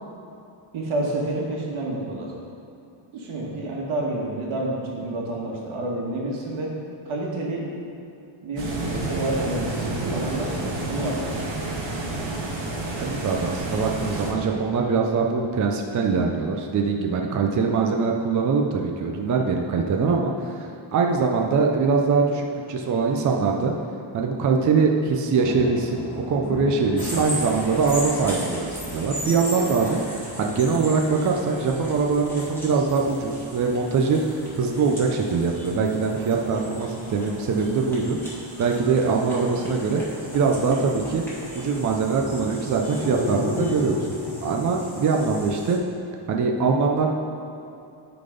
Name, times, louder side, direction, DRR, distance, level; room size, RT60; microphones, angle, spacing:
voice 1, 0.7-2.3 3.1-6.7 7.0-7.6 8.4-11.8, right 2 dB, 80° right, -3 dB, 1.7 m, -29 dB
sound 1, 8.5-14.3, right 2 dB, 65° right, 1.6 m, -29 dB
voice 2, 13.0-20.3 20.9-23.7 24.1-40.0 40.3-41.2 41.6-44.1 44.4-45.8 46.3-47.1, right 4 dB, 40° right, 1 dB, 0.5 m, -23 dB
sound 2, 25.3-32.5 33.1-38.6 39.5-41.2 43.0-45.1, left 3 dB, 20° left, 1.1 m, -37 dB
sound 3, 27.0-45.8, equal, 5° left, 1.7 m, -37 dB
10.0 x 4.0 x 5.1 m, 2.7 s
wide cardioid pair, 170°, 48 cm